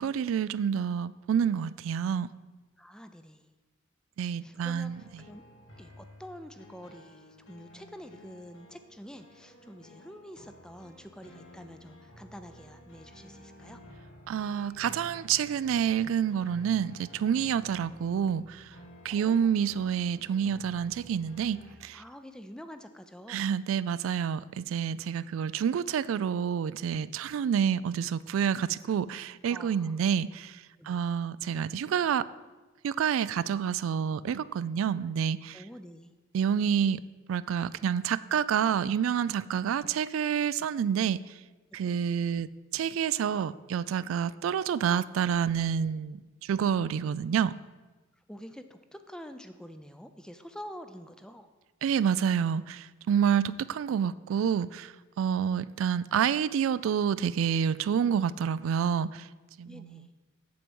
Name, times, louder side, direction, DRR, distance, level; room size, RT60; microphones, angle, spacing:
voice 1, 0.0-2.3 4.2-5.0 14.3-18.6 19.0-22.0 23.3-30.6 30.9-32.3 32.8-35.6 36.3-37.0 37.3-41.2 41.7-42.5 42.7-47.5 51.8-59.3 59.6-60.1, right 8 dB, 90° right, 17 dB, 0.3 m, -28 dB
voice 2, 2.8-3.5 4.4-5.4 5.8-13.8 19.1-19.6 21.9-23.5 29.4-30.0 30.8-31.0 35.5-36.2 41.8-41.9 48.3-51.5 59.6-60.1, equal, 5° left, 9 dB, 0.4 m, -47 dB
sound 1, 4.7-21.7, equal, 80° left, 1.6 m, -52 dB
7.6 x 7.4 x 5.3 m, 1.2 s
head